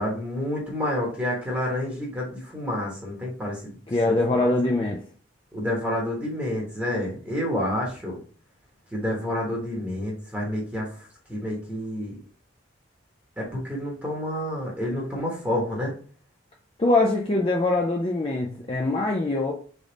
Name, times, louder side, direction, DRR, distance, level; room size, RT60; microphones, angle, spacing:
voice 1, 0.0-3.8 4.1-4.7 5.5-8.2 8.9-12.2 13.4-15.9, left 1 dB, 10° right, -3 dB, 1.1 m, -29 dB
voice 2, 3.9-5.0 16.8-19.5, left 2 dB, 30° left, 0 dB, 0.5 m, -23 dB
3.7 x 3.5 x 3.9 m, 0.42 s
head